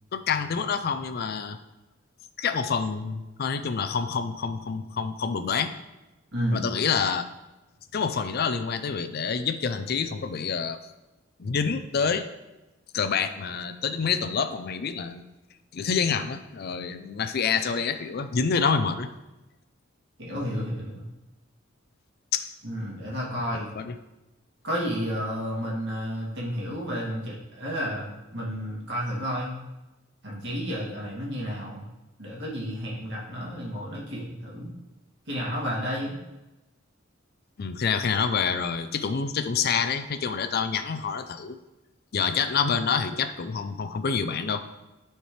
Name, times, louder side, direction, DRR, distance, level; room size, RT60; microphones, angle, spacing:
voice 1, 0.1-1.6 2.4-5.7 6.5-7.2 7.9-10.8 11.4-12.3 12.9-15.2 15.7-19.1 22.3-22.5 23.8-23.9 37.6-41.6 42.1-44.6, left 6 dB, 50° left, 10 dB, 0.5 m, -27 dB
voice 2, 6.3-6.6 20.2-20.9 22.6-23.7 24.6-29.5 30.2-31.8 32.2-34.7 35.3-36.2, equal, 60° right, -4 dB, 2.4 m, -31 dB
12.5 x 4.4 x 3.2 m, 1.0 s
head